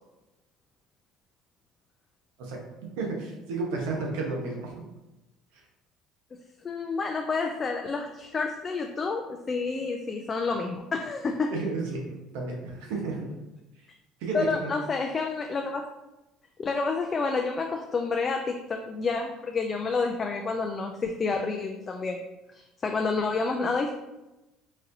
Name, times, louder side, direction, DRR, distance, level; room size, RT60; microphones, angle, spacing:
voice 1, 3.0-4.8 5.5-5.6 11.5-13.3 14.2-14.7, right 3 dB, 85° right, 0 dB, 0.9 m, -32 dB
voice 2, 6.6-11.5 14.3-15.8 16.6-22.2 22.5-23.9, left 4 dB, 30° left, 3 dB, 0.3 m, -29 dB
4.1 x 2.6 x 2.6 m, 1.0 s
supercardioid pair, 95°, 0 cm